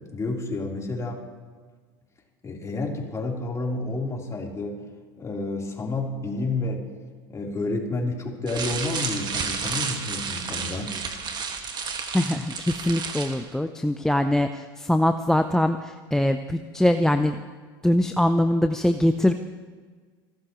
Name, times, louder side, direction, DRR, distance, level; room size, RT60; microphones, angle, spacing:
voice 1, 0.1-1.2 2.4-4.8 5.2-6.9 7.3-11.0, left 2 dB, 25° left, -2 dB, 3.7 m, -30 dB
sound 1, 8.5-13.5, right 5 dB, 35° right, 1.8 m, -31 dB
voice 2, 12.1-17.4 17.8-19.3, left 1 dB, 5° left, 9 dB, 0.6 m, -22 dB
29.5 x 13.0 x 3.1 m, 1.5 s
hypercardioid pair, 85°, 12 cm